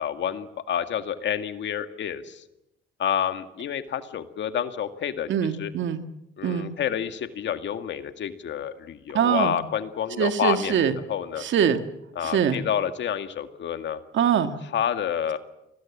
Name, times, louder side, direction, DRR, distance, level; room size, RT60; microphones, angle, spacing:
voice 1, 0.0-2.4 3.0-5.3 5.6-5.7 6.4-10.8 11.1-11.4 12.2-14.0 14.7-15.4, left 9 dB, 65° left, 9 dB, 2.0 m, -28 dB
voice 2, 5.3-6.0 6.4-6.7 9.1-9.5 10.2-10.9 11.4-11.8 12.2-12.6 14.1-14.5, right 8 dB, 70° right, 8 dB, 2.0 m, -23 dB
30.0 x 20.5 x 7.5 m, 0.89 s
cardioid pair, 90°, 20 cm